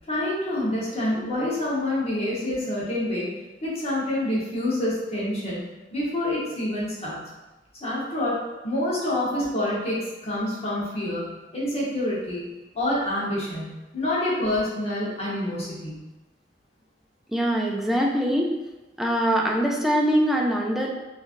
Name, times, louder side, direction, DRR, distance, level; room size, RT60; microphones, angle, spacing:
voice 1, 0.1-3.3 3.6-5.6 5.9-7.2 7.8-8.4 8.6-12.5 12.7-13.7 13.9-16.0, left 1 dB, 35° left, -7 dB, 1.0 m, -27 dB
voice 2, 17.3-18.5 19.0-20.9, equal, ahead, -1 dB, 0.3 m, -23 dB
3.0 x 2.5 x 2.5 m, 1.1 s
head